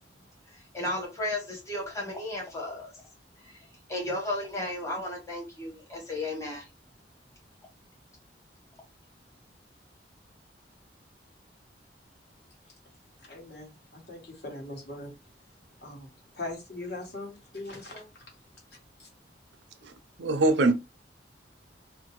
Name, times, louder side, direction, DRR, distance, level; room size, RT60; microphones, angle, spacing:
voice 1, 0.7-2.9 3.4-3.6 3.9-6.7, left 1 dB, 15° left, 1.0 m, -34 dB
voice 2, 13.3-15.1 15.8-16.1 16.3-18.1 19.0-19.1, left 2 dB, 60° left, 1.2 m, -40 dB
voice 3, 20.2-20.7, right 2 dB, 75° right, 0.5 m, -22 dB
2.6 x 2.1 x 3.0 m
head